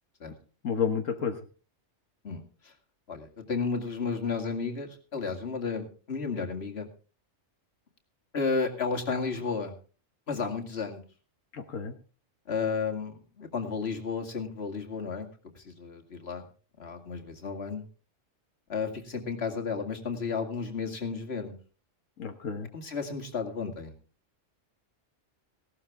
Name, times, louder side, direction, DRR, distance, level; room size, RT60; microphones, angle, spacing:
voice 1, 0.6-1.4 11.5-11.9 22.2-22.7, left 6 dB, 85° left, 4 dB, 1.6 m, -30 dB
voice 2, 2.2-2.7 3.1-6.9 8.3-9.7 10.3-11.0 12.5-15.3 15.6-16.5 16.8-17.8 18.7-21.6 22.7-23.9, left 5 dB, 55° left, 3 dB, 2.4 m, -33 dB
17.0 x 12.5 x 3.6 m, 0.37 s
omnidirectional pair, 1.3 m